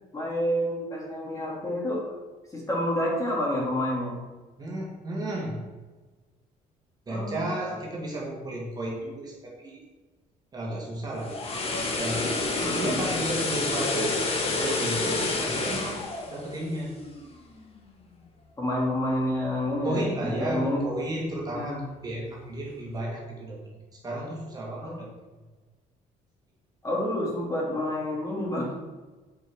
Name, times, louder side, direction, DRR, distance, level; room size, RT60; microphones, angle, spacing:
voice 1, 0.1-2.1 2.5-4.2 7.1-7.5 12.6-13.0 18.6-20.9 21.5-21.8 24.8-25.0 26.8-28.8, left 1 dB, 20° left, -3 dB, 3.2 m, -29 dB
voice 2, 4.6-5.6 7.1-9.8 10.5-11.4 12.0-12.3 12.6-14.2 14.6-17.0 19.8-23.6 23.9-25.1, right 1 dB, 25° right, -3 dB, 2.3 m, -33 dB
sound 1, 11.0-17.2 17.6-17.8, left 3 dB, 40° left, 1.7 m, -29 dB
8.1 x 6.2 x 6.3 m, 1.3 s
cardioid pair, 130°, 15 cm